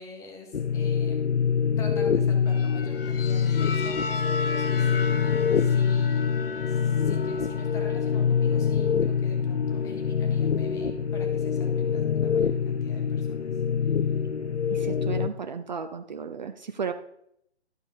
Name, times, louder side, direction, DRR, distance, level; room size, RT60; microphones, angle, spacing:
voice 1, 0.0-1.4 1.8-6.3 6.7-13.4, left 4 dB, 10° left, 2 dB, 1.1 m, -46 dB
sound 1, 0.5-15.3, left 7 dB, 80° left, 0.6 m, -25 dB
sound 2, 2.5-12.4, left 4 dB, 55° left, 0.9 m, -38 dB
voice 2, 14.7-16.9, right 6 dB, 40° right, 8 dB, 0.6 m, -34 dB
12.0 x 4.9 x 5.4 m, 0.74 s
figure-of-eight pair, 135°, 34 cm